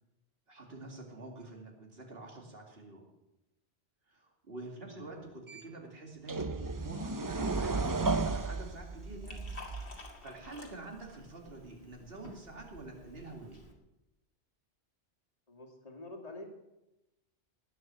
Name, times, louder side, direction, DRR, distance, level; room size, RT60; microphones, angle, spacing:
voice 1, 0.5-3.1 4.1-9.5 9.9-13.6, right 2 dB, 60° right, 1 dB, 2.6 m, -47 dB
voice 2, 4.7-5.1 15.5-16.5, left 2 dB, 35° left, 0 dB, 2.5 m, -47 dB
sound 1, 5.5-5.6 6.3-10.0, right 3 dB, 25° right, 0.4 m, -34 dB
Liquid, 8.1-13.7, left 2 dB, 55° left, 2.2 m, -52 dB
18.5 x 6.3 x 7.6 m, 0.94 s
omnidirectional pair, 1.1 m